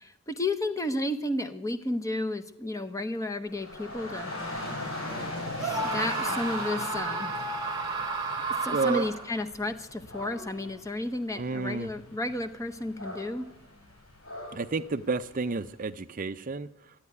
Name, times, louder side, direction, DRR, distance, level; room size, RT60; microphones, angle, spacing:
voice 1, 0.0-4.3 5.6-7.3 8.6-13.5, left 1 dB, 15° left, 9 dB, 0.8 m, -32 dB
Dog / Rain, 3.5-15.7, left 1 dB, 75° left, 7.1 m, -40 dB
Screaming, 5.6-9.4, right 3 dB, 20° right, 1.4 m, -32 dB
voice 2, 8.7-9.0 11.3-11.9 14.5-16.9, right 4 dB, 40° right, 12 dB, 0.5 m, -31 dB
13.0 x 9.3 x 9.6 m, 0.85 s
head